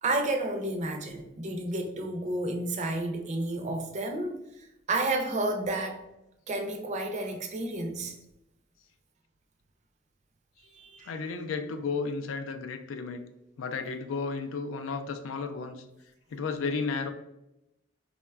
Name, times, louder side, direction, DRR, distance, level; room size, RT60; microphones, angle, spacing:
voice 1, 0.0-4.4 4.9-6.0 6.5-8.1 10.7-11.1, right 2 dB, 40° right, 4 dB, 0.4 m, -31 dB
voice 2, 11.0-13.2 13.6-15.8 16.3-17.1, left 4 dB, 90° left, 7 dB, 0.4 m, -33 dB
3.8 x 2.1 x 2.3 m, 0.90 s
head